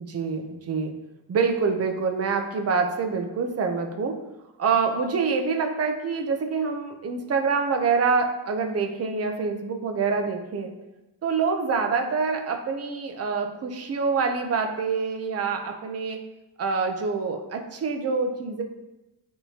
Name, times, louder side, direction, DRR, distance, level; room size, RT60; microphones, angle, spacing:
voice 1, 0.1-0.9 1.3-4.1 4.6-10.7 11.2-16.2 16.6-18.6, right 5 dB, 30° right, 4 dB, 0.6 m, -26 dB
9.6 x 3.7 x 2.8 m, 1.0 s
cardioid pair, 145°, 49 cm